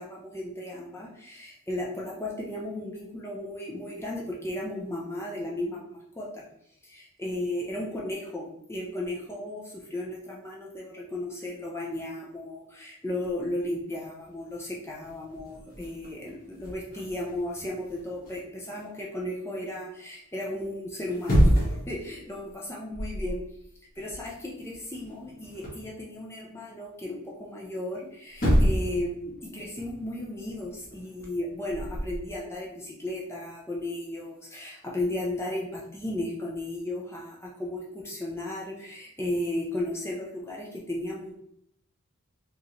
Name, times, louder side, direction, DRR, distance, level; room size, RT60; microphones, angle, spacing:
voice 1, 0.0-6.4 6.8-23.4 24.0-41.3, left 1 dB, 10° left, -4 dB, 0.6 m, -35 dB
sound 1, 13.2-13.6 14.2-14.3 14.5-18.8 21.0-21.9 22.3-22.5 22.9-23.4 23.7-25.9 27.9-28.0 28.3-29.0 29.3-32.2, equal, 40° left, 1.5 m, -28 dB
4.6 x 3.1 x 3.1 m, 0.73 s
head